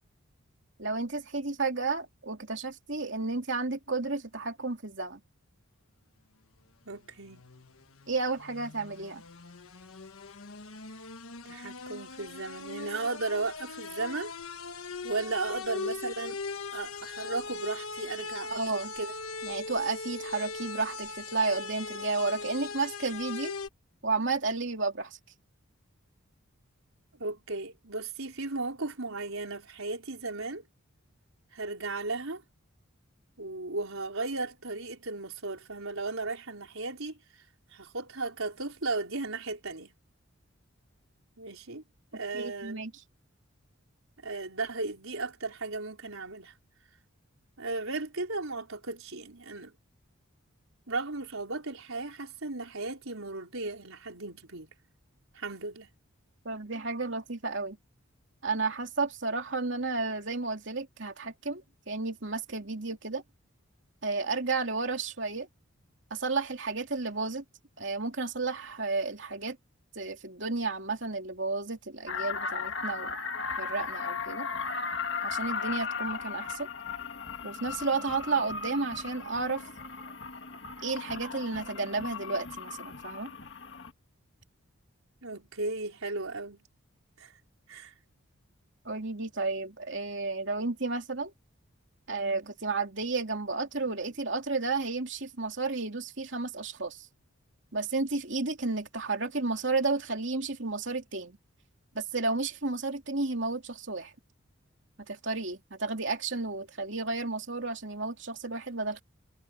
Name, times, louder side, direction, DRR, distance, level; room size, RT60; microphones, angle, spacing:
voice 1, 0.8-5.2 8.1-9.2 18.5-18.9 19.4-23.5 24.0-25.2 42.3-42.9 56.4-57.8 58.4-63.2 64.0-65.5 66.1-67.4 67.8-69.6 69.9-73.2 73.6-74.5 75.2-76.7 77.4-79.6 80.8-83.3 88.8-91.3 92.1-97.1 97.7-101.4 101.9-104.1 105.1-109.0, right 3 dB, 55° right, 3.2 m, -32 dB
voice 2, 6.9-7.5 11.4-14.3 15.0-16.4 16.7-19.1 27.2-30.6 31.5-32.4 33.4-37.2 37.7-39.9 41.4-41.8 42.1-42.8 44.2-46.5 47.6-49.7 50.9-54.7 55.3-55.9 85.2-86.6 87.2-87.3 87.7-87.9, right 3 dB, 75° right, 4.4 m, -35 dB
sound 1, 7.0-23.7, left 4 dB, 80° left, 1.4 m, -40 dB
sound 2, 72.1-83.9, left 5 dB, 55° left, 1.7 m, -36 dB
head